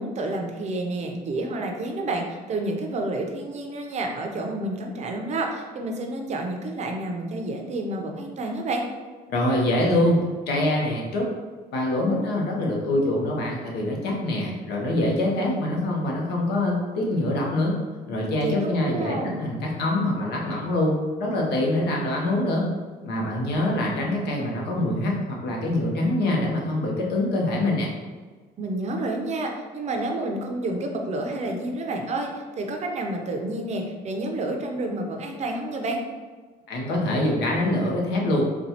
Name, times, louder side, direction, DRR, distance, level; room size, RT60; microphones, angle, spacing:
voice 1, 0.0-8.9 18.4-18.5 18.8-19.4 28.6-36.0, right 2 dB, 40° right, 2 dB, 0.5 m, -29 dB
voice 2, 9.3-11.3 11.7-17.7 18.1-22.6 23.0-27.9 36.7-38.4, left 1 dB, 75° left, -1 dB, 0.9 m, -24 dB
4.1 x 2.2 x 2.8 m, 1.4 s
cardioid pair, 110°, 17 cm